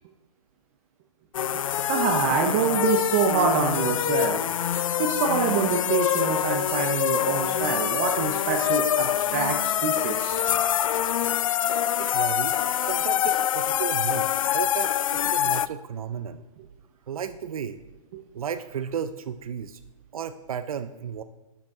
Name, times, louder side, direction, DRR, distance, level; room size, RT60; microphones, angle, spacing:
sound 1, 1.3-15.7, left 10 dB, 65° left, 0.4 m, -25 dB
voice 1, 1.8-10.4 18.1-18.2, right 6 dB, 25° right, 3 dB, 0.6 m, -26 dB
voice 2, 12.0-16.4 17.1-17.8 18.3-19.8 20.1-21.2, right 7 dB, 75° right, 11 dB, 0.6 m, -34 dB
12.0 x 7.9 x 3.6 m, 1.1 s
hypercardioid pair, 165°, 18 cm